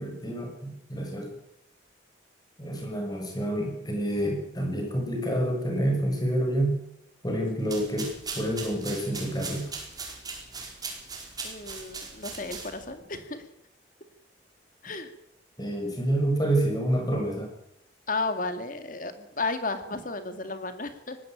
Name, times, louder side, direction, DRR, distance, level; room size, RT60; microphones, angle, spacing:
voice 1, 0.0-1.4 2.6-6.8 7.2-9.7 15.6-17.5, right 1 dB, 20° left, 2 dB, 6.0 m, -28 dB
sound 1, 7.6-13.0, right 4 dB, 20° right, 4.9 m, -39 dB
voice 2, 11.4-13.4 14.8-15.1 18.1-21.2, left 3 dB, 45° left, 9 dB, 2.3 m, -33 dB
19.5 x 15.5 x 9.0 m, 0.81 s
head